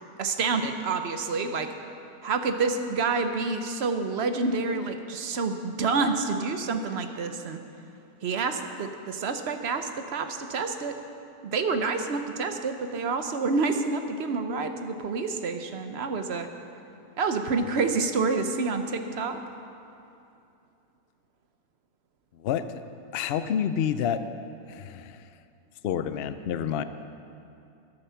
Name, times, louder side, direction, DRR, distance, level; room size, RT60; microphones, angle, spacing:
voice 1, 0.2-1.7 2.2-7.6 8.2-10.9 11.4-16.5 17.2-19.4, right 4 dB, 50° right, 7 dB, 0.9 m, -28 dB
voice 2, 23.1-24.2 24.7-25.2 25.8-26.8, left 9 dB, 85° left, 11 dB, 0.5 m, -28 dB
13.5 x 12.0 x 5.8 m, 2.7 s
omnidirectional pair, 1.7 m